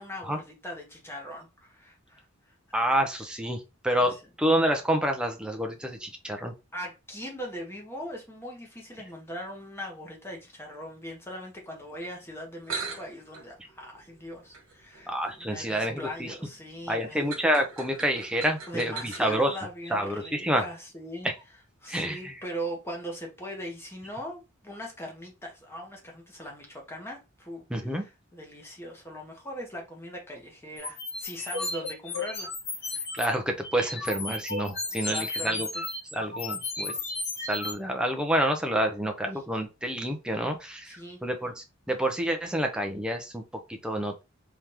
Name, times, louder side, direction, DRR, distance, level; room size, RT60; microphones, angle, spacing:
voice 1, 0.0-2.2 4.1-4.2 6.7-15.1 15.4-17.2 18.7-21.3 21.8-27.7 27.9-32.5 32.8-33.0 34.8-35.8 40.9-41.2, equal, 10° left, 1.2 m, -40 dB
voice 2, 2.7-6.5 15.1-16.3 16.9-19.6 19.9-20.6 21.9-22.4 27.7-28.0 33.1-35.7 36.1-36.9 37.5-43.4 43.7-44.2, right 1 dB, 5° right, 0.6 m, -28 dB
sound 1, 12.3-12.4 12.6-19.4, right 5 dB, 80° right, 1.4 m, -42 dB
sound 2, 30.8-33.3 33.6-37.7, left 3 dB, 45° left, 1.1 m, -34 dB
3.6 x 3.4 x 2.9 m
head